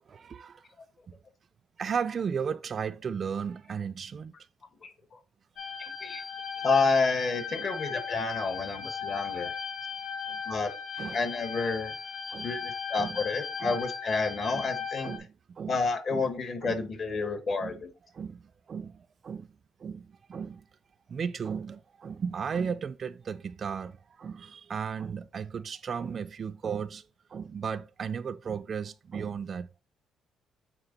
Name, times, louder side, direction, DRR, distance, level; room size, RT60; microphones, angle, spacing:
voice 1, 0.1-0.7 1.8-4.3 5.6-5.7 10.3-10.4 11.0-11.2 12.3-12.5 13.0-13.2 13.6-13.8 14.5-14.6 15.0-15.8 16.1-16.3 16.6-16.8 17.6-17.8 18.1-19.5 19.8-20.7 21.1-27.0 27.3-29.8, right 6 dB, 40° right, 0.4 m, -35 dB
voice 2, 4.8-5.2 5.8-6.2 6.6-9.6 10.4-10.7 11.1-11.9 12.4-15.1 15.7-17.9, left 4 dB, 45° left, 1.3 m, -29 dB
sound 1, 5.6-15.2, left 6 dB, 80° left, 4.0 m, -37 dB
9.0 x 3.6 x 4.0 m
cardioid pair, 115°, 0 cm